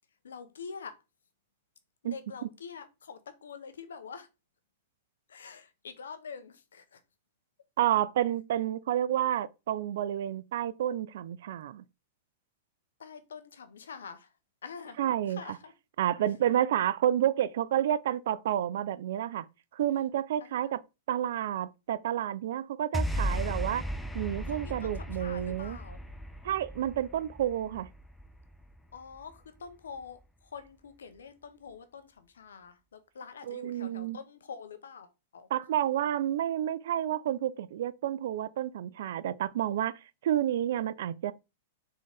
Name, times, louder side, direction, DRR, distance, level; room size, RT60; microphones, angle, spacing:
voice 1, 0.2-1.0 2.0-4.3 5.3-7.0 13.0-14.4 14.6-15.0 15.3-15.7 19.9-20.1 20.4-20.8 23.1-23.4 24.4-26.0 28.9-35.5, left 6 dB, 90° left, 0.8 m, -46 dB
voice 2, 7.8-11.8 15.0-15.4 16.0-19.4 19.7-20.8 21.1-23.8 24.1-25.8 26.4-27.9 33.5-34.2 35.5-39.9 40.2-41.3, right 11 dB, 70° right, 0.4 m, -30 dB
sound 1, 22.9-29.4, equal, 5° left, 0.6 m, -36 dB
3.8 x 3.7 x 3.5 m
hypercardioid pair, 125°, 0 cm